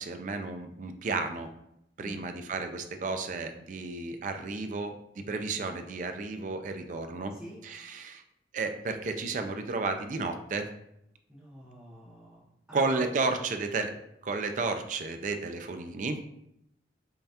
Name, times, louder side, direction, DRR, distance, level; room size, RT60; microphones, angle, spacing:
voice 1, 0.0-1.5 2.0-7.3 7.6-8.2 8.5-10.7 12.7-13.9 14.2-16.2, right 3 dB, 45° right, 6 dB, 0.3 m, -32 dB
voice 2, 11.3-12.4 12.7-13.1, equal, 10° right, -10 dB, 0.8 m, -46 dB
5.3 x 2.3 x 2.8 m, 0.78 s
head